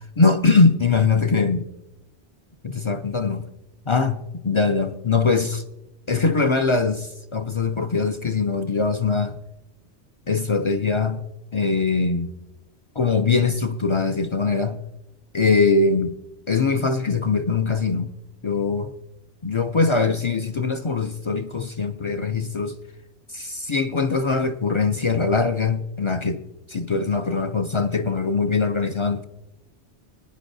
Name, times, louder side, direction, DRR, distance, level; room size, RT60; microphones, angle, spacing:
voice 1, 0.2-1.6 2.6-3.4 3.9-5.6 6.1-9.4 10.3-11.2 11.5-12.3 13.0-14.8 15.3-16.2 16.5-18.1 18.4-18.9 19.4-22.8 23.3-26.4 26.7-29.2, left 4 dB, 45° left, 0.4 m, -22 dB
20.5 x 10.0 x 2.6 m
omnidirectional pair, 1.1 m